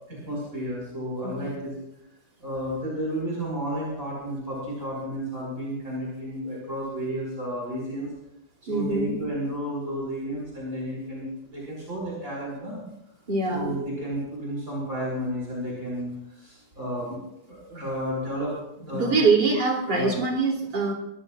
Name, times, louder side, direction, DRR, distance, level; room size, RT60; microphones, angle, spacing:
voice 1, 0.1-1.7 2.4-8.1 8.7-12.8 13.5-17.2 17.5-19.2 19.9-20.1, equal, 40° right, -5 dB, 5.3 m, -32 dB
voice 2, 8.7-9.1 13.3-13.7 18.9-20.9, right 4 dB, 55° right, -1 dB, 3.9 m, -23 dB
24.5 x 14.5 x 2.5 m, 0.87 s
omnidirectional pair, 2.2 m